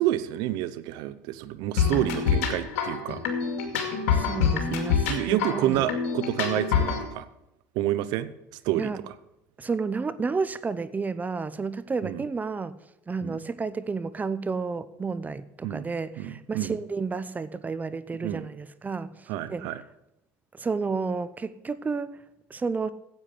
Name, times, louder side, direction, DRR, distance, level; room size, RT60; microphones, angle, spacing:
voice 1, 0.0-3.2 4.7-4.8 5.1-7.3 7.7-8.3 8.6-8.9 12.0-12.2 13.2-13.4 15.6-15.9 16.2-16.8 18.1-18.5 19.3-19.8, right 14 dB, 70° right, 0.9 m, -29 dB
sound 1, 1.8-7.0, left 6 dB, 85° left, 2.3 m, -26 dB
voice 2, 4.1-5.9 8.7-9.0 9.6-12.8 13.1-19.7 20.5-22.2 22.5-22.9, right 4 dB, 20° right, 0.7 m, -31 dB
9.9 x 8.5 x 7.7 m
supercardioid pair, 90°, 7 cm